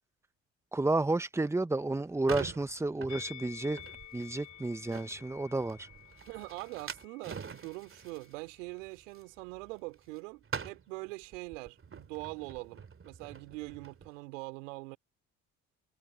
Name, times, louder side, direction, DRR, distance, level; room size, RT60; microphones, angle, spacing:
voice 1, 0.7-3.8 4.1-5.9, right 2 dB, 5° right, 0.6 m, -31 dB
sound 1, 1.8-10.2 10.4-14.1, right 6 dB, 35° right, 2.6 m, -46 dB
Musical instrument, 3.1-8.3 8.6-8.8, left 14 dB, 50° left, 4.8 m, -51 dB
voice 2, 6.3-15.0, right 26 dB, 80° right, 2.7 m, -43 dB
hypercardioid pair, 50°, 37 cm